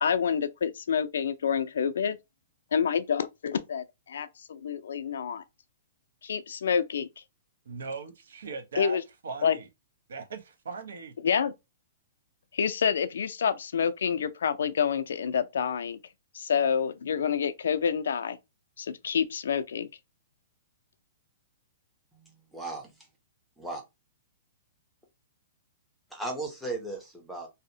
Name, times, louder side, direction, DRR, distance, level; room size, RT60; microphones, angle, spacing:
voice 1, 0.0-2.2 2.7-5.4 6.2-7.1 8.8-9.0 9.4-9.6 11.2-11.5 12.5-16.0 16.3-18.4 18.8-19.9, left 7 dB, 80° left, 0.3 m, -28 dB
voice 2, 7.6-9.0 9.2-9.7 10.1-11.1, right 5 dB, 85° right, 0.7 m, -39 dB
voice 3, 22.1-23.0 23.6-23.8 26.1-27.5, right 2 dB, ahead, 0.5 m, -36 dB
2.7 x 2.0 x 2.6 m
hypercardioid pair, 175°, 0 cm